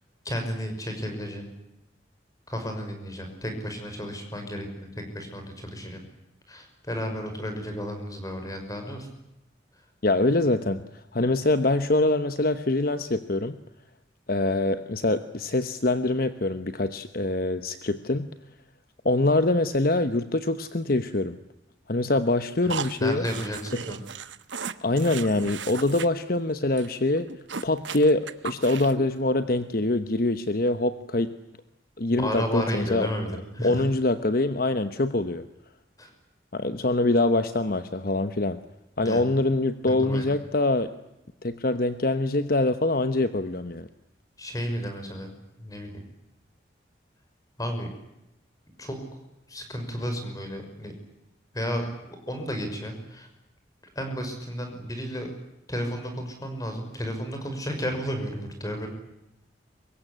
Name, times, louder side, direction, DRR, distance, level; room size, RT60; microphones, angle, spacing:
voice 1, 0.2-1.5 2.5-6.0 6.5-9.1 23.0-24.0 32.1-33.8 36.0-36.1 39.0-39.2 39.9-40.3 44.4-45.3 45.6-45.9 47.6-47.9 48.8-49.0 49.5-50.9 51.5-53.3 54.0-55.3 55.7-58.9, equal, 20° left, 5 dB, 5.7 m, -32 dB
voice 2, 10.0-10.8 11.1-13.6 14.3-18.3 19.0-21.4 21.9-23.3 24.8-27.3 27.6-31.3 32.0-33.1 33.6-35.4 36.5-38.6 39.0-40.9 41.4-43.9, left 2 dB, 50° left, 10 dB, 1.0 m, -24 dB
sound 1, 22.7-26.1 26.4-26.5 26.8-26.9 27.2-29.1, right 6 dB, 80° right, 1.2 m, -36 dB
24.5 x 22.0 x 10.0 m, 0.89 s
head